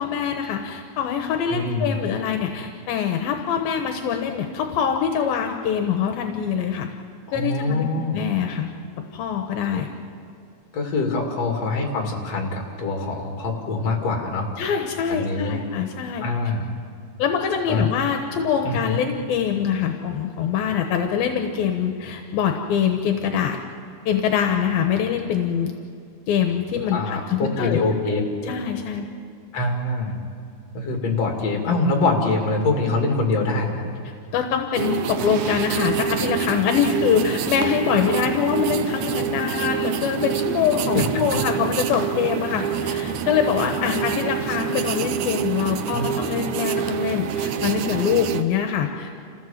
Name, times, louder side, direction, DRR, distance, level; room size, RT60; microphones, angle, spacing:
voice 1, 0.0-6.9 7.3-8.7 9.1-9.9 14.6-16.2 17.2-23.6 24.1-25.7 26.3-27.8 28.1-28.2 28.4-29.1 34.3-49.2, left 8 dB, 80° left, 5 dB, 2.7 m, -24 dB
voice 2, 1.5-2.1 7.3-8.2 9.7-9.8 10.7-14.5 15.1-15.6 16.2-16.7 17.7-17.9 18.6-19.0 26.9-28.5 29.5-30.2 30.7-33.9 40.9-41.0 45.9-46.1, left 3 dB, 45° left, 1 dB, 3.4 m, -24 dB
sound 1, 34.8-48.4, right 8 dB, 80° right, 1.7 m, -26 dB
28.5 x 16.0 x 7.3 m, 2.3 s
omnidirectional pair, 4.4 m